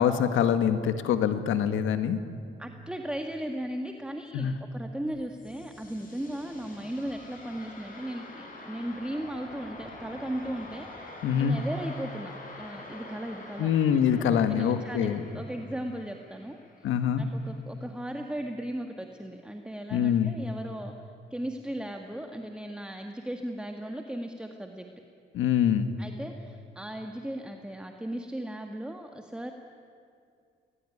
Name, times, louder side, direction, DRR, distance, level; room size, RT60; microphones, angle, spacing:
voice 1, 0.0-2.2 4.3-4.5 11.2-11.6 13.6-15.2 16.8-17.2 19.9-20.3 25.3-25.9, left 8 dB, 85° left, 10 dB, 1.7 m, -24 dB
voice 2, 2.6-13.7 14.1-14.2 14.5-16.6 17.1-20.9 21.3-24.9 26.0-29.5, right 1 dB, 5° right, 4 dB, 1.8 m, -37 dB
sound 1, 5.1-17.7, left 2 dB, 45° left, 7.1 m, -46 dB
28.0 x 20.5 x 10.0 m, 2.4 s
cardioid pair, 90°, 20 cm